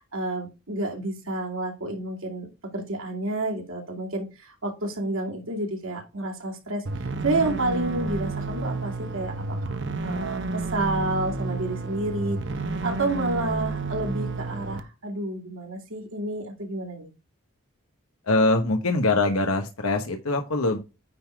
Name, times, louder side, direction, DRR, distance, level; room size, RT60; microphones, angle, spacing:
voice 1, 0.0-2.5 2.7-17.1, right 2 dB, 70° right, 1 dB, 2.6 m, -30 dB
sound 1, 6.9-14.8, right 3 dB, 55° right, 0.8 m, -30 dB
voice 2, 18.3-20.8, left 2 dB, 80° left, 4 dB, 1.1 m, -23 dB
9.5 x 3.7 x 4.6 m, 0.27 s
head